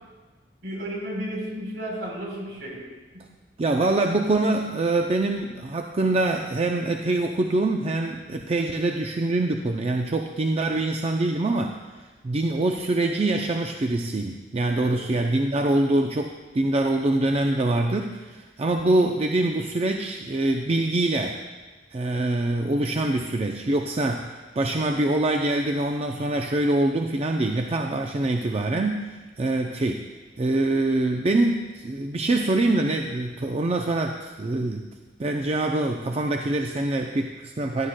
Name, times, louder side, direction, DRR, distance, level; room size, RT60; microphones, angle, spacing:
voice 1, 0.6-2.8 14.8-15.0, equal, 70° right, -2 dB, 3.8 m, -33 dB
voice 2, 3.6-11.7 12.2-21.4 21.9-29.1 29.4-30.0 30.4-34.8 35.2-37.9, right 2 dB, 35° right, 3 dB, 0.5 m, -24 dB
16.0 x 11.0 x 2.2 m, 1.3 s
head